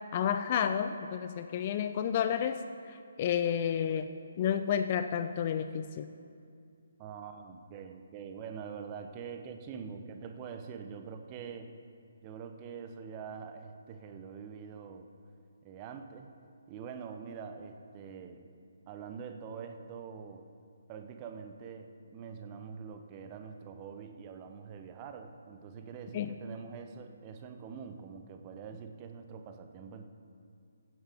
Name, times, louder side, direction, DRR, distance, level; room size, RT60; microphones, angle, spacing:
voice 1, 0.1-2.6 2.9-6.1 26.1-26.3, left 8 dB, 35° left, 10 dB, 0.4 m, -31 dB
voice 2, 7.0-11.7 12.2-15.1 15.6-16.3 16.7-18.4 18.9-20.5 20.9-30.1, right 6 dB, 25° right, 6 dB, 0.8 m, -44 dB
15.5 x 9.1 x 3.6 m, 2.4 s
figure-of-eight pair, 140°, 0 cm